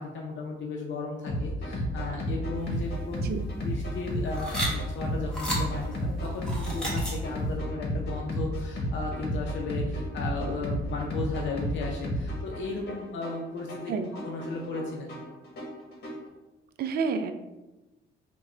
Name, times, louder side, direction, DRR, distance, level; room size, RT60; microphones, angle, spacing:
voice 1, 0.0-3.2 3.6-13.9 14.2-15.1, left 3 dB, 70° left, -1 dB, 0.6 m, -35 dB
sound 1, 1.3-16.3, equal, 55° left, 1.1 m, -32 dB
sound 2, 2.6-7.5, equal, 5° left, 1.4 m, -35 dB
voice 2, 16.8-17.3, right 5 dB, 55° right, 8 dB, 0.4 m, -29 dB
3.6 x 2.2 x 4.2 m, 1.0 s
cardioid pair, 90°, 20 cm